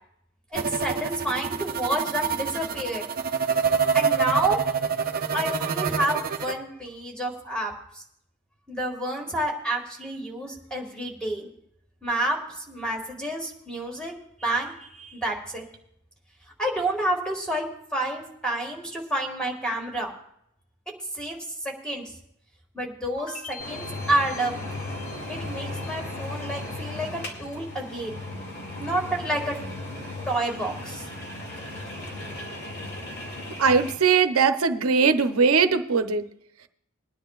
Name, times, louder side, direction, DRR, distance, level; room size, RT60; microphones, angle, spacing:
voice 1, 0.5-3.0 3.9-4.6 5.3-8.0 8.7-11.5 12.0-15.7 16.6-17.7 17.9-20.1 21.1-22.1 22.7-24.5 25.3-28.2 28.8-29.6 30.3-31.1, right 1 dB, 5° left, 0 dB, 2.0 m, -29 dB
sound 1, 0.5-6.5, right 6 dB, 45° right, 0.7 m, -26 dB
sound 2, 23.2-28.2 28.5-29.1, left 3 dB, 70° left, 1.7 m, -46 dB
sound 3, 23.6-33.9, left 2 dB, 55° left, 2.5 m, -36 dB
voice 2, 33.6-36.3, right 5 dB, 90° right, 8 dB, 0.8 m, -20 dB
22.5 x 10.0 x 2.5 m, 0.74 s
head